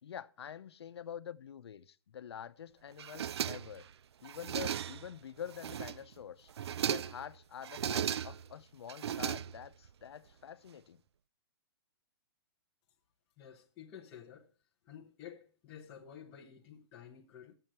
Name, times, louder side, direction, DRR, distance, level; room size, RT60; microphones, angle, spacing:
voice 1, 0.0-3.9 4.2-6.5 6.8-11.0, left 9 dB, 85° left, 0.8 m, -46 dB
sound 1, 3.0-3.9 4.2-5.1 5.5-6.1 6.5-7.3 7.6-8.5 8.9-9.9, right 9 dB, 85° right, 0.5 m, -36 dB
voice 2, 13.4-14.5 14.8-17.5, left 8 dB, 15° left, 0.8 m, -52 dB
12.5 x 7.8 x 4.4 m
hypercardioid pair, 180°, 13 cm